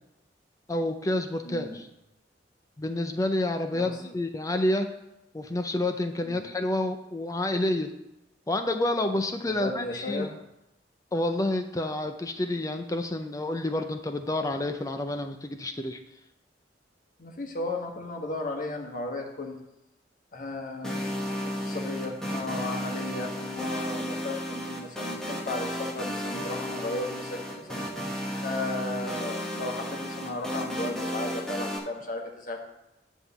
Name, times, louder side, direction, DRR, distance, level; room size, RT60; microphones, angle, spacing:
voice 1, 0.7-1.9 2.8-4.9 5.3-7.9 8.5-10.3 11.1-16.0, left 1 dB, 20° left, 6 dB, 0.5 m, -29 dB
voice 2, 1.4-1.8 3.7-3.9 6.2-6.4 9.4-10.3 17.2-19.6 20.3-21.1 21.6-32.6, left 2 dB, 50° left, 1 dB, 1.4 m, -35 dB
sound 1, 20.8-31.8, equal, 5° left, 1.1 m, -33 dB
9.9 x 3.7 x 7.0 m, 0.89 s
head